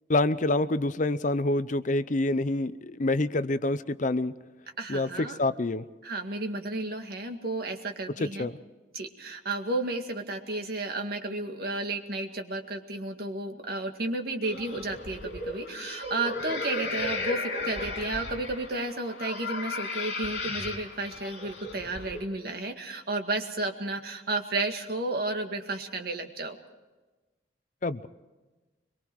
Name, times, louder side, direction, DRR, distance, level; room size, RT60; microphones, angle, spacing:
voice 1, 0.1-4.3 4.9-5.1 5.4-5.8 8.4-8.5 27.8-28.1, left 2 dB, 45° left, 14 dB, 0.6 m, -26 dB
voice 2, 4.8-5.4 6.0-8.5 8.9-26.6, right 2 dB, 55° right, 4 dB, 2.0 m, -32 dB
sound 1, 14.4-22.2, left 2 dB, 65° left, 4.6 m, -35 dB
24.5 x 23.0 x 4.7 m, 1.2 s
head